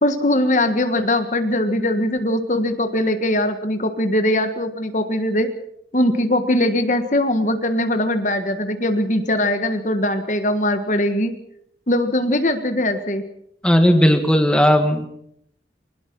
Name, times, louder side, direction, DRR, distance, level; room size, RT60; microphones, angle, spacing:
voice 1, 0.0-5.5 5.9-11.3 11.9-13.2, left 1 dB, 45° left, 8 dB, 1.6 m, -21 dB
voice 2, 13.6-15.1, equal, 5° left, 6 dB, 1.9 m, -15 dB
22.5 x 20.0 x 6.2 m, 0.73 s
head